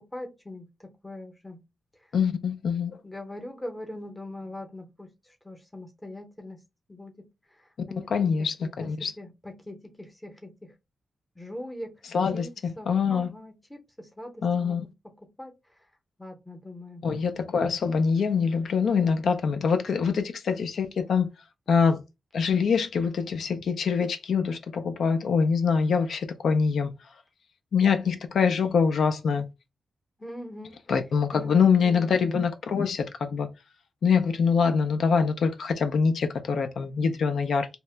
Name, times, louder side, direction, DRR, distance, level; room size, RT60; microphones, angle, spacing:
voice 1, 0.0-1.6 3.0-6.6 6.9-7.2 7.6-8.3 8.6-10.7 11.4-11.9 12.3-12.5 12.8-14.9 15.2-15.5 16.2-17.1 30.2-30.8 31.3-32.3, left 1 dB, 10° left, 0.7 m, -42 dB
voice 2, 2.1-3.0 8.1-9.1 12.1-13.3 14.4-14.8 17.0-21.3 21.7-22.0 22.3-26.9 27.7-29.5 30.9-33.5 34.0-37.7, left 6 dB, 75° left, 0.4 m, -24 dB
2.8 x 2.1 x 3.2 m
wide cardioid pair, 145°, 0 cm